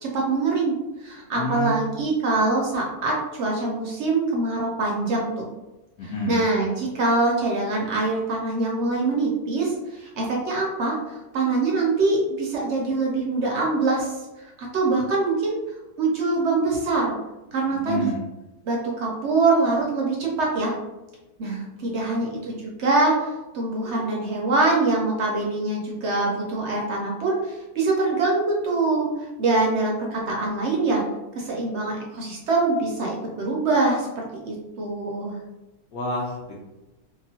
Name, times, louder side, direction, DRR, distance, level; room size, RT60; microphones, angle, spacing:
voice 1, 0.0-0.8 1.0-5.5 6.0-14.2 14.4-15.6 16.0-17.2 17.5-18.1 18.7-20.7 21.4-23.3 23.5-29.1 29.4-31.0 31.3-35.4, right 3 dB, 65° right, -2 dB, 0.7 m, -24 dB
voice 2, 1.3-1.9 6.0-6.4 17.7-18.2 35.9-36.6, left 1 dB, 65° left, -6 dB, 1.0 m, -29 dB
2.8 x 2.4 x 2.7 m, 1.0 s
omnidirectional pair, 1.7 m